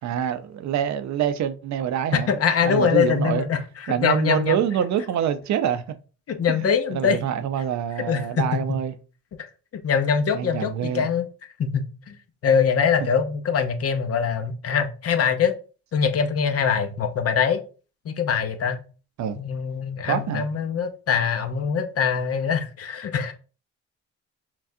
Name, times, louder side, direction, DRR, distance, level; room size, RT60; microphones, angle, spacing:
voice 1, 0.0-3.4 3.9-5.8 6.5-6.6 6.9-9.0 10.3-11.1 19.2-19.4 20.1-20.5, right 9 dB, 65° right, 0.6 m, -26 dB
voice 2, 2.1-3.6 4.0-4.6 6.3-7.2 8.1-8.6 9.8-11.2 11.6-12.1 12.4-15.5 15.9-17.6 18.1-18.8 19.4-23.3, left 7 dB, 50° left, 0.7 m, -23 dB
5.8 x 2.3 x 2.7 m
cardioid pair, 90°, 30 cm